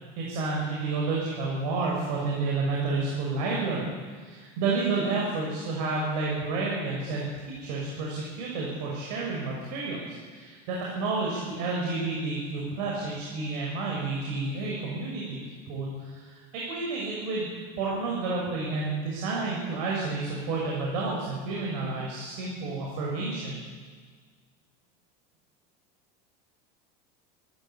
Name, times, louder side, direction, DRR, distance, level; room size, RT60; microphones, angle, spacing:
voice 1, 0.2-10.0 10.3-15.4 15.7-17.5 17.8-23.6, right 3 dB, 85° right, -3 dB, 6.5 m, -30 dB
26.5 x 14.5 x 8.6 m, 1.5 s
cardioid pair, 175°, 21 cm